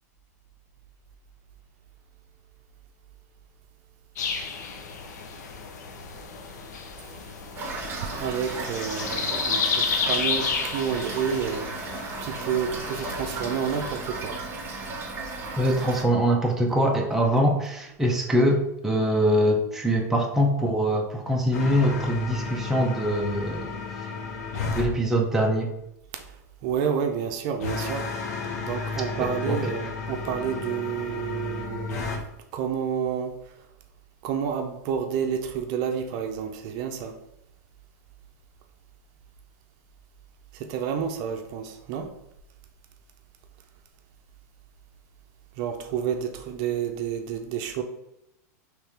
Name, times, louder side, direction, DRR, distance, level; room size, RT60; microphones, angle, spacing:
sound 1, 4.2-14.0, left 5 dB, 85° left, 0.7 m, -32 dB
Toilet flush / Fill (with liquid), 7.6-16.0, right 3 dB, 25° right, 1.2 m, -35 dB
voice 1, 8.0-11.9 12.2-14.4 26.6-28.1 28.6-32.2 32.5-33.4 34.2-37.2 40.5-42.1 45.6-47.8, right 7 dB, 45° right, 5 dB, 0.6 m, -29 dB
voice 2, 15.6-23.7 24.6-25.7 29.2-29.8, equal, 5° right, -1 dB, 0.6 m, -23 dB
sound 2, 21.5-24.9 27.6-32.2, left 4 dB, 70° left, 0.9 m, -32 dB
4.6 x 3.3 x 3.4 m, 0.83 s
supercardioid pair, 135°, 9 cm